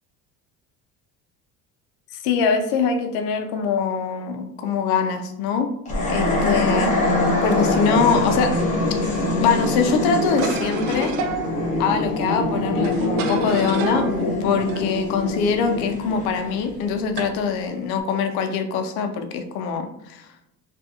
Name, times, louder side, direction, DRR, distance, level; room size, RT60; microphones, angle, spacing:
voice 1, 2.2-5.7 6.1-6.9 7.4-8.5 9.4-11.2 11.8-14.1 14.4-20.3, left 6 dB, 90° left, 6 dB, 0.6 m, -23 dB
sound 1, 5.9-17.2, left 2 dB, 20° left, 0.7 m, -24 dB
sound 2, 7.6-18.0, right 5 dB, 70° right, 0.5 m, -35 dB
3.5 x 2.4 x 2.8 m, 0.82 s
cardioid pair, 170°, 36 cm